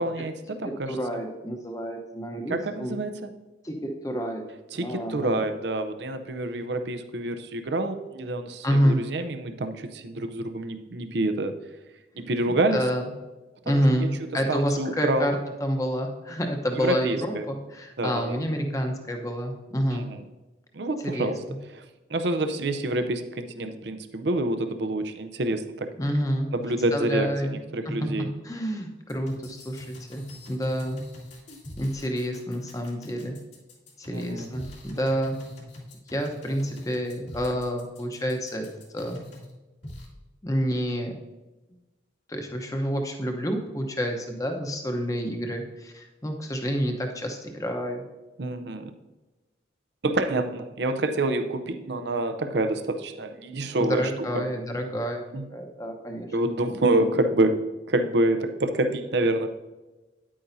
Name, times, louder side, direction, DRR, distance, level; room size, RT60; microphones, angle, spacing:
voice 1, 0.0-1.2 2.5-3.3 4.7-11.6 12.2-12.8 13.7-14.1 14.5-15.3 16.8-17.4 18.0-18.4 19.9-20.2 20.7-21.4 21.7-25.9 26.5-28.3 34.1-34.5 48.4-48.9 50.0-54.5 55.3-55.4 56.3-59.5, right 2 dB, 65° right, 9 dB, 0.6 m, -27 dB
voice 2, 0.9-3.0 3.6-4.4 4.8-5.4 8.6-9.0 12.7-13.0 13.6-20.1 21.0-21.3 26.0-26.5 26.9-27.6 27.8-28.1 28.4-31.0 31.8-33.3 34.0-35.4 36.1-38.6 38.9-39.2 40.4-41.1 42.3-48.0 53.8-55.2 55.5-56.3, equal, 20° left, 4 dB, 0.9 m, -28 dB
sound 1, 29.1-39.5 39.8-40.1, left 1 dB, 70° left, 2.4 m, -43 dB
10.0 x 8.6 x 2.7 m, 1.1 s
head